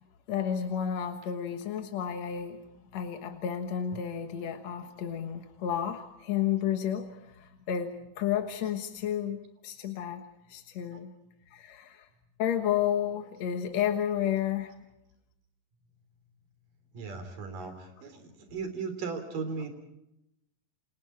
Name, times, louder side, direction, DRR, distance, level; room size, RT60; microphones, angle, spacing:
voice 1, 0.3-2.6 2.9-11.1 11.5-12.1 12.4-14.8, left 9 dB, 60° left, 6 dB, 2.0 m, -31 dB
voice 2, 16.9-19.7, right 5 dB, 60° right, 8 dB, 5.0 m, -37 dB
29.5 x 26.5 x 4.6 m, 0.85 s
omnidirectional pair, 4.5 m